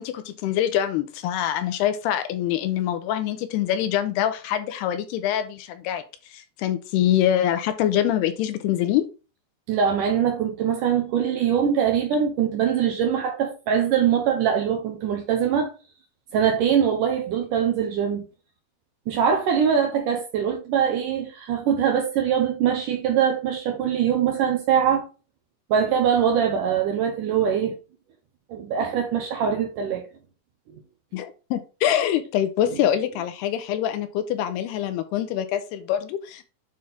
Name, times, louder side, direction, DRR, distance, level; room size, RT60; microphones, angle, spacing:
voice 1, 0.0-6.0 6.3-9.1 31.1-36.4, left 11 dB, 85° left, 2.8 m, -24 dB
voice 2, 9.7-15.7 16.3-18.3 19.1-25.1 25.7-27.7 28.5-30.0, right 8 dB, 70° right, 2.1 m, -22 dB
8.6 x 4.3 x 3.6 m
omnidirectional pair, 4.7 m